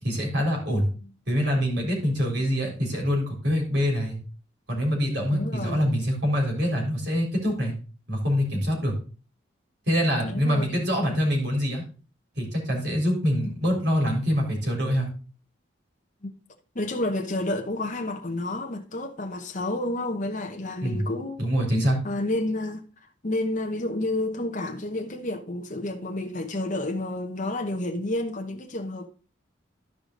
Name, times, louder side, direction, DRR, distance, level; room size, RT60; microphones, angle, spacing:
voice 1, 0.0-0.9 1.3-4.2 4.7-7.7 8.1-8.9 9.9-11.8 12.4-15.1 20.8-21.0 21.4-22.0, equal, 60° right, 3.7 m, -25 dB
voice 2, 5.3-5.8 10.2-10.7 16.2-16.3 16.7-21.4 22.0-22.8 23.2-29.1, left 1 dB, 40° left, 0.9 m, -30 dB
12.5 x 4.9 x 3.8 m
head